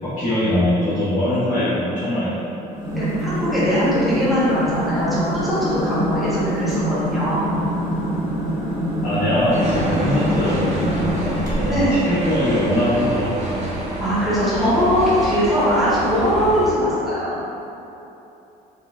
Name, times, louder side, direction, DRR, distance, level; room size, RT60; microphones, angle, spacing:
voice 1, 0.0-2.4 9.0-13.7, left 1 dB, 55° left, -16 dB, 1.4 m, -22 dB
sound 1, 2.7-11.9, equal, 20° right, 1.0 m, -25 dB
voice 2, 2.9-7.5 11.6-12.2 14.0-17.3, equal, ahead, -11 dB, 1.2 m, -21 dB
sound 2, 9.5-16.7, equal, 40° right, 0.7 m, -28 dB
4.2 x 2.6 x 2.4 m, 2.9 s
cardioid pair, 110°, 17 cm